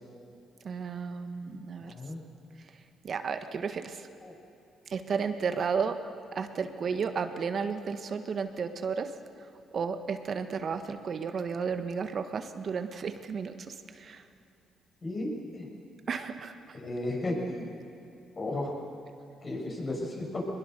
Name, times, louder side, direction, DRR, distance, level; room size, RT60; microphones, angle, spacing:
voice 1, 0.6-1.9 3.0-4.0 4.9-6.0 6.3-9.1 9.7-14.2 16.1-16.5, right 6 dB, 50° right, 8 dB, 1.4 m, -33 dB
voice 2, 1.8-2.2 4.2-4.3 15.0-15.7 16.7-17.7 18.4-18.7 19.4-20.5, left 1 dB, 40° left, -2 dB, 7.1 m, -34 dB
23.0 x 20.5 x 6.8 m, 2.8 s
cardioid pair, 90°, 0 cm